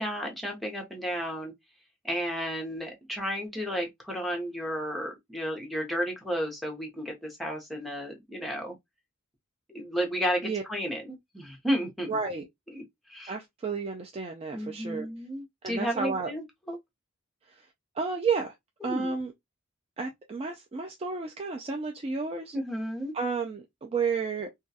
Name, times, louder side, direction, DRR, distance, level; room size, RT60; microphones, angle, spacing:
voice 1, 0.0-1.5 2.0-8.8 9.7-12.1 12.7-12.8 13.1-13.3 14.5-16.8 18.8-19.2 22.5-23.2, equal, ahead, 0.7 m, -32 dB
voice 2, 12.1-12.4 13.3-15.1 15.6-16.3 17.5-17.7 18.0-18.5 18.8-19.3 20.0-22.6 23.1-24.5, right 5 dB, 30° right, 0.3 m, -31 dB
2.3 x 2.2 x 2.6 m
head